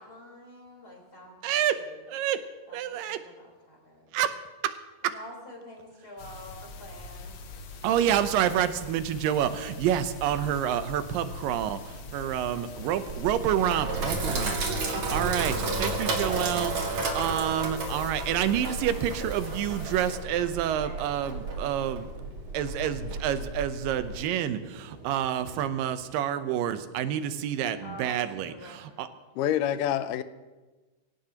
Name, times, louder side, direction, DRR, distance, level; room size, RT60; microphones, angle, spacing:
voice 1, 0.0-2.1 2.7-4.2 5.0-7.4 20.8-21.3 27.8-29.1, left 1 dB, 25° left, -2 dB, 4.4 m, -47 dB
voice 2, 1.4-1.8 2.1-2.4 2.7-3.2 4.1-4.4 4.6-4.8 5.0-5.1 7.8-22.1 22.5-29.1, right 10 dB, 80° right, 11 dB, 2.5 m, -28 dB
sound 1, 6.2-20.2, left 3 dB, 60° left, 2.0 m, -43 dB
sound 2, 12.1-26.0, right 1 dB, 30° right, 4.2 m, -49 dB
Sink (filling or washing), 13.1-24.1, right 3 dB, 50° right, 2.6 m, -32 dB
voice 3, 29.4-30.2, left 11 dB, 80° left, 13 dB, 2.2 m, -26 dB
23.5 x 16.5 x 2.9 m, 1.2 s
omnidirectional pair, 3.9 m